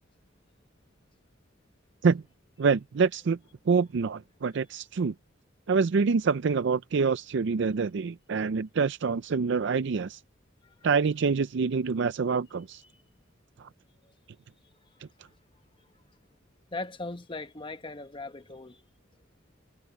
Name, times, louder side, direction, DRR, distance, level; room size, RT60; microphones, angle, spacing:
voice 1, 2.6-3.4 3.7-5.1 5.7-10.2 10.8-12.8 13.6-13.7, right 5 dB, 60° right, 0.4 m, -26 dB
voice 2, 16.7-18.8, left 2 dB, 25° left, 1.1 m, -39 dB
head